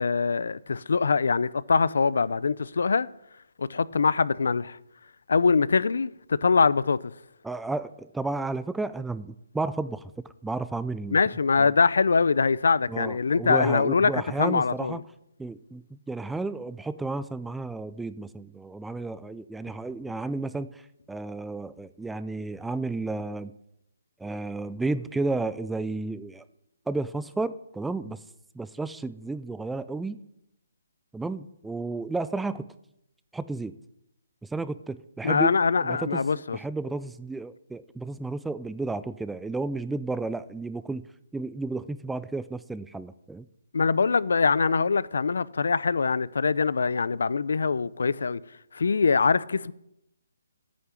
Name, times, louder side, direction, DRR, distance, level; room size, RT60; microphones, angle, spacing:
voice 1, 0.0-3.1 3.6-4.8 5.3-7.1 11.1-15.0 35.2-36.6 43.7-48.4 48.7-49.7, left 5 dB, 75° left, 0.5 m, -23 dB
voice 2, 7.4-10.1 10.4-11.2 12.9-15.0 15.4-20.8 21.1-23.5 24.2-26.4 26.9-28.2 28.6-30.2 31.1-32.7 33.3-33.7 34.4-35.5 35.8-36.2 36.5-41.1 41.3-43.5, right 3 dB, 5° right, 0.3 m, -32 dB
9.4 x 6.7 x 8.8 m
hypercardioid pair, 155°, 0 cm